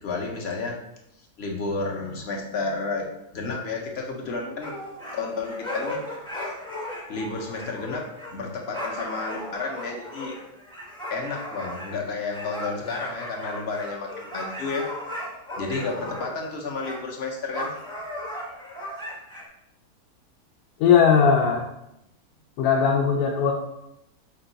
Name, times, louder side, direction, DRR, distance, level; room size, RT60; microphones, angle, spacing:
voice 1, 0.0-0.8 1.4-4.7 5.1-6.0 7.1-10.4 11.1-14.8 15.6-17.7, left 3 dB, 55° left, 0 dB, 0.8 m, -31 dB
sound 1, 4.6-16.5 16.7-17.0 17.5-19.4, left 1 dB, 5° left, 0.5 m, -36 dB
voice 2, 20.8-21.6 22.6-23.5, left 6 dB, 80° left, -1 dB, 1.1 m, -18 dB
5.2 x 2.3 x 3.9 m, 0.83 s
omnidirectional pair, 1.6 m